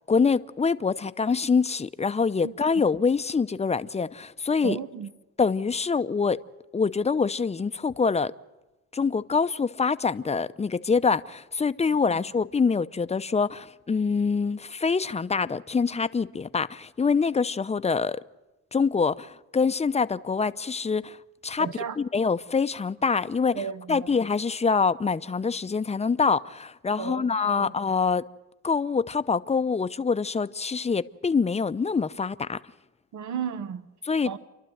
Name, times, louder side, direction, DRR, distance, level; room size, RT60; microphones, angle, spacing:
voice 1, 0.1-4.8 5.4-6.4 6.7-8.3 8.9-18.2 18.7-21.2 21.4-21.7 22.0-28.2 28.6-32.6 34.0-34.4, left 5 dB, 20° left, 0.7 m, -25 dB
voice 2, 4.6-5.1 21.6-22.0 23.5-24.1 27.0-27.7 33.1-33.9 34.3-34.4, right 7 dB, 70° right, 1.2 m, -34 dB
29.5 x 12.0 x 8.0 m
cardioid pair, 90°, 30 cm